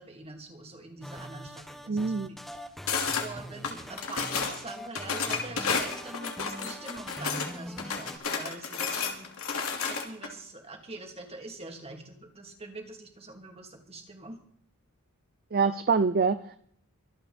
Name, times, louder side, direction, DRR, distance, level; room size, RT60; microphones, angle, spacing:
voice 1, 0.0-2.1 2.4-2.7 3.2-9.3 9.8-14.4, right 2 dB, 30° right, 3 dB, 2.9 m, -44 dB
sound 1, 1.0-8.2, equal, ahead, 1.4 m, -43 dB
voice 2, 1.9-2.3 15.5-16.6, right 5 dB, 45° right, 12 dB, 0.6 m, -25 dB
sound 2, 2.9-3.3 3.6-4.6 4.9-7.5 7.8-10.3, left 5 dB, 70° left, 2.8 m, -31 dB
24.5 x 9.2 x 4.4 m, 0.64 s
head